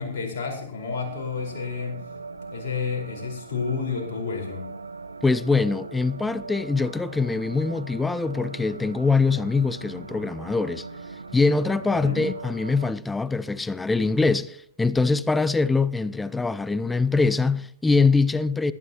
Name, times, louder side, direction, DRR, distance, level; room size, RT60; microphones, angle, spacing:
voice 1, 0.0-2.0 2.5-4.7 11.9-12.3, left 5 dB, 55° left, 4.8 m, -30 dB
sound 1, 1.0-12.9, right 4 dB, 80° right, 0.9 m, -40 dB
voice 2, 5.2-10.9 11.3-18.7, left 4 dB, 10° left, 0.5 m, -23 dB
21.5 x 11.0 x 3.0 m
figure-of-eight pair, 105°, 0 cm